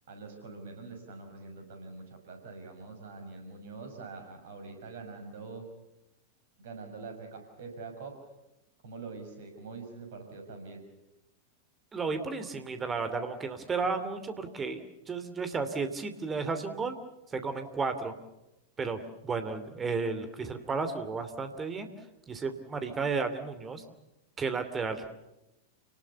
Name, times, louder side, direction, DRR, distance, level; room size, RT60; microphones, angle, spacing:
voice 1, 0.1-5.6 6.6-8.3 8.8-10.8, right 4 dB, 55° right, 5 dB, 6.1 m, -44 dB
voice 2, 11.9-17.0 17.3-18.1 18.8-21.9 22.3-23.8 24.4-25.1, right 4 dB, 20° right, 9 dB, 2.8 m, -33 dB
29.0 x 19.5 x 7.0 m, 0.93 s
figure-of-eight pair, 90°, 0 cm